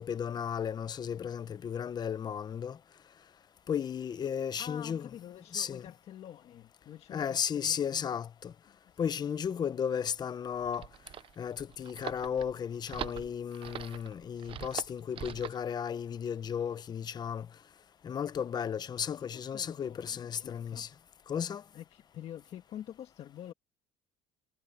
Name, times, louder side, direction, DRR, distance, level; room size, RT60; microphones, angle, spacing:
voice 1, 0.0-2.8 3.7-5.1 5.5-5.9 7.1-8.5 9.0-10.9 11.4-17.5 18.0-20.9 21.3-21.6, left 8 dB, 30° left, 0.8 m, -34 dB
voice 2, 4.6-8.1 8.7-8.9 9.4-9.5 19.1-20.9 21.7-23.5, left 11 dB, 45° left, 1.9 m, -47 dB
sound 1, 10.5-15.6, right 11 dB, 40° right, 0.6 m, -43 dB
cardioid pair, 130°, 14 cm